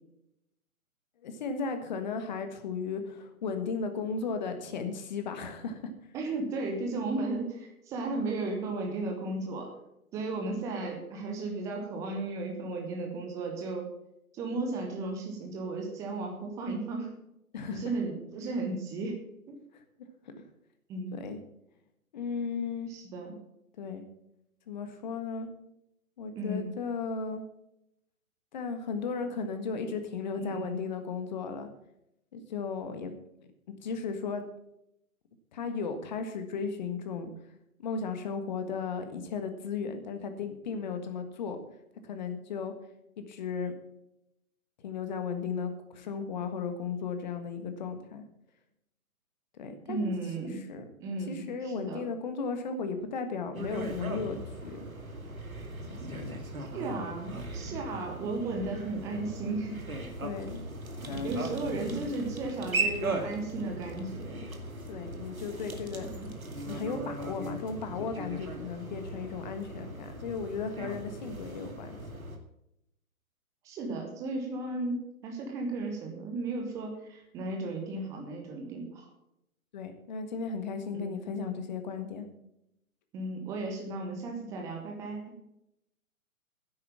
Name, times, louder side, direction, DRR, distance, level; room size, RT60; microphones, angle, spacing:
voice 1, 1.2-5.9 17.5-17.8 20.3-20.4 21.1-21.4 22.1-22.9 23.8-24.0 24.7-25.5 26.2-27.4 28.5-31.7 32.3-33.1 33.8-34.4 35.5-37.3 37.8-41.6 42.0-42.7 43.2-43.7 44.8-48.2 49.6-50.1 50.7-50.8 51.3-54.9 56.1-56.4 60.2-60.6 61.1-61.3 64.9-66.1 66.7-72.0 79.7-82.3, left 5 dB, 30° left, 8 dB, 1.5 m, -35 dB
voice 2, 6.1-9.7 10.1-13.9 14.3-17.1 17.7-19.2 19.5-19.6 20.9-21.2 22.9-23.4 26.3-26.7 30.4-30.8 49.9-50.6 51.0-52.0 56.6-59.8 61.2-64.4 66.0-66.3 73.6-79.1 80.9-81.1 83.1-85.4, right 2 dB, 5° right, 2 dB, 0.8 m, -35 dB
sound 1, 53.5-72.4, right 2 dB, 70° right, 2.3 m, -38 dB
10.0 x 8.7 x 7.3 m, 0.83 s
figure-of-eight pair, 135°, 43 cm